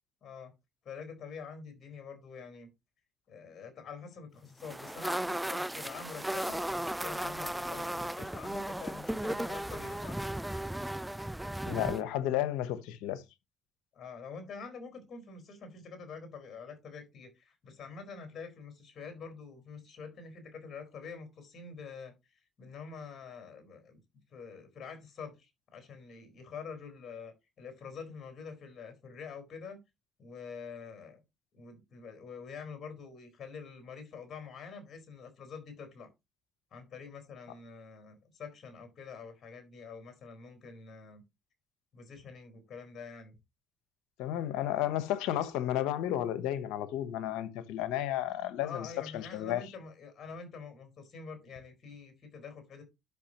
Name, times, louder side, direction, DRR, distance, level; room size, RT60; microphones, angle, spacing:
voice 1, 0.2-0.5 0.8-2.7 3.3-10.2 13.9-24.0 24.3-29.8 30.2-31.2 31.5-36.1 36.7-41.2 41.9-43.4 48.6-52.8, left 5 dB, 55° left, 4.5 m, -46 dB
sound 1, 4.6-12.0, right 1 dB, 5° right, 0.4 m, -36 dB
voice 2, 11.7-13.2 44.2-48.9 49.1-49.7, left 12 dB, 85° left, 1.0 m, -32 dB
12.0 x 5.9 x 3.0 m
supercardioid pair, 65°, 0 cm